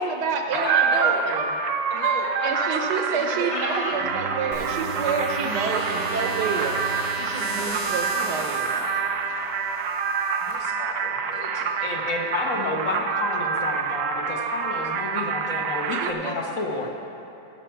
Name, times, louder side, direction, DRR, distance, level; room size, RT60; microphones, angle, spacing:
voice 1, 0.0-1.5 2.4-8.8 9.3-9.4 11.9-12.0 12.5-12.6 15.2-15.3 16.0-16.4, right 5 dB, 70° right, 4 dB, 1.3 m, -29 dB
voice 2, 0.5-1.2 1.9-4.0 7.5-8.9 9.2-9.3 10.4-12.5, left 3 dB, 85° left, -1 dB, 2.1 m, -35 dB
sound 1, 0.5-16.1, right 6 dB, 90° right, 0.6 m, -27 dB
Bowed string instrument, 3.9-8.4, right 5 dB, 50° right, 0.8 m, -37 dB
sound 2, 4.5-10.5, left 1 dB, 70° left, 3.4 m, -37 dB
voice 3, 11.8-16.9, left 2 dB, 50° left, 1 dB, 1.4 m, -30 dB
15.5 x 5.9 x 5.7 m, 2.7 s
omnidirectional pair, 2.0 m